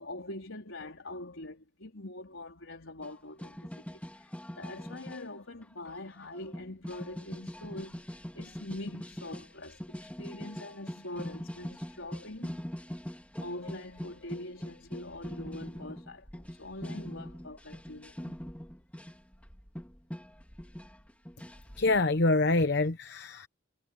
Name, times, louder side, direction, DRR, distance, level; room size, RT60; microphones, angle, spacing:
voice 1, 0.0-8.0 8.3-12.6 13.4-18.5, left 1 dB, 75° left, 4.2 m, -44 dB
sound 1, 3.0-3.1 3.4-5.2 5.6-5.7 5.9-6.0 6.2-22.0, equal, 5° left, 2.9 m, -42 dB
voice 2, 21.8-23.5, left 2 dB, 55° left, 0.9 m, -26 dB
head